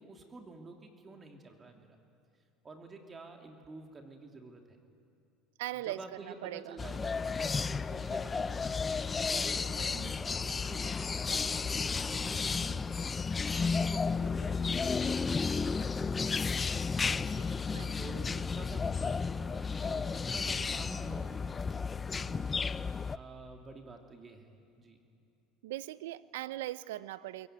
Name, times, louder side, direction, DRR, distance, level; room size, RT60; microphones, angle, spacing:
voice 1, 0.0-2.0 2.6-4.8 5.9-8.8 9.2-13.0 13.5-16.4 16.7-17.2 18.0-22.5 23.1-25.0, right 3 dB, 25° right, 3 dB, 2.8 m, -49 dB
voice 2, 5.6-6.8 17.0-17.9 22.2-22.4 25.6-27.5, right 15 dB, 80° right, 18 dB, 0.6 m, -41 dB
sound 1, 6.8-23.2, left 5 dB, 25° left, 0.5 m, -33 dB
21.5 x 18.0 x 9.4 m, 2.6 s
hypercardioid pair, 85°, 0 cm